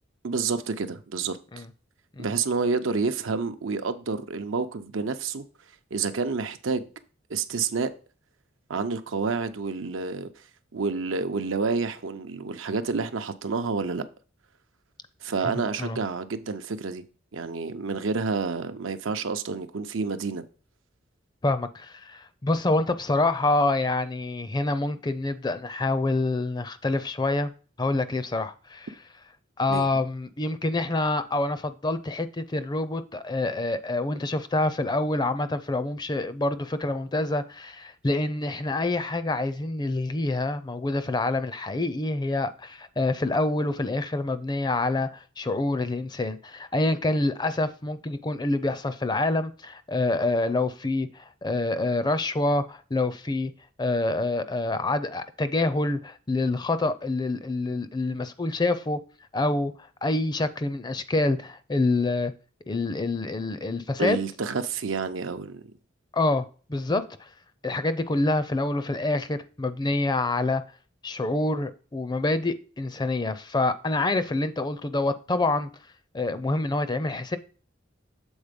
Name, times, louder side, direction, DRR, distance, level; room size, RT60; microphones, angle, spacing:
voice 1, 0.2-1.4 2.2-5.4 5.9-6.9 7.3-7.9 8.7-10.3 10.7-14.0 15.2-17.0 17.3-20.4 29.7-29.9 64.0-65.7, right 4 dB, 85° right, 0.7 m, -29 dB
voice 2, 15.4-16.0 21.4-27.5 27.8-28.9 29.6-53.5 53.8-59.0 59.3-59.7 60.0-62.3 62.7-64.2 66.1-67.3 67.6-70.6 71.0-75.7 76.1-77.4, left 2 dB, 20° left, 0.5 m, -27 dB
7.1 x 4.1 x 5.1 m
head